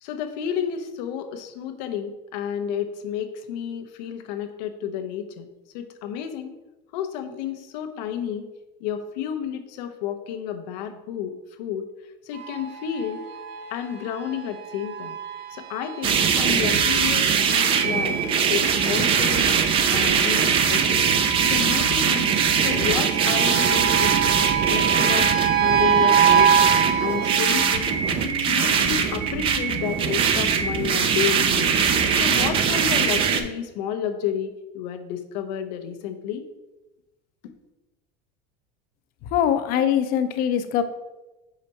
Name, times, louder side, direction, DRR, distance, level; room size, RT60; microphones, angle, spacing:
voice 1, 0.0-5.5 5.7-6.6 6.9-8.5 8.8-11.9 12.2-13.2 13.7-15.2 15.5-18.2 18.5-19.5 19.9-21.0 21.4-22.3 22.6-24.3 24.7-26.6 27.0-28.0 28.2-31.7 32.1-36.5, left 8 dB, 85° left, 7 dB, 0.8 m, -31 dB
sound 1, 12.4-27.8, right 8 dB, 50° right, 0.8 m, -26 dB
sound 2, 16.0-33.4, right 6 dB, 25° right, 0.4 m, -21 dB
voice 2, 39.3-40.8, left 9 dB, 45° left, 9 dB, 0.6 m, -22 dB
5.4 x 5.0 x 4.1 m, 1.0 s
cardioid pair, 170°, 21 cm